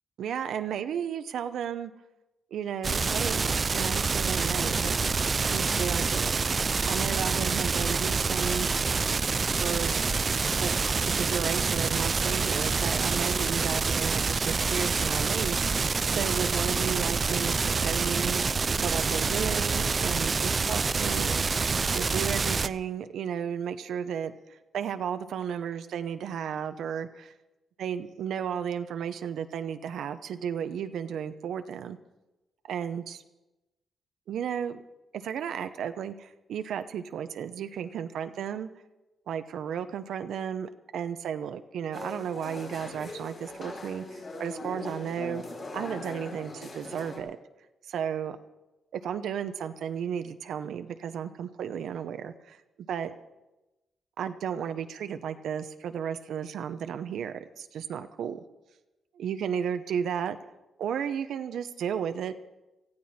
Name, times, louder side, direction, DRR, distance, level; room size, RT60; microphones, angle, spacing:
voice 1, 0.2-1.9 2.5-5.1 5.4-6.3 6.9-8.7 9.6-10.0 10.6-10.7 11.1-18.4 18.8-21.4 21.9-24.3 24.7-27.3 27.8-32.0 32.6-33.2 34.3-34.8 35.1-38.7 39.3-45.4 45.7-47.4 47.9-48.4 48.9-52.6 52.9-53.1 54.2-58.4 59.2-60.4 60.8-62.3, right 8 dB, 85° right, 9 dB, 0.8 m, -33 dB
sound 1, 2.8-22.7, right 4 dB, 35° right, 0.4 m, -27 dB
sound 2, 41.9-47.2, left 2 dB, 45° left, 4.9 m, -40 dB
18.5 x 15.0 x 4.3 m, 1.0 s
cardioid pair, 120°, 0 cm